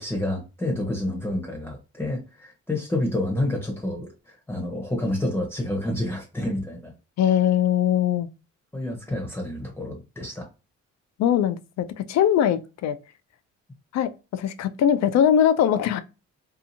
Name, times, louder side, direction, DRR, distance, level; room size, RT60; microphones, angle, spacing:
voice 1, 0.0-6.9 8.7-10.5, left 1 dB, 10° left, 0.8 m, -29 dB
voice 2, 7.2-8.3 11.2-13.0 13.9-16.0, left 9 dB, 60° left, 0.5 m, -21 dB
2.7 x 2.4 x 2.6 m
cardioid pair, 90°, 30 cm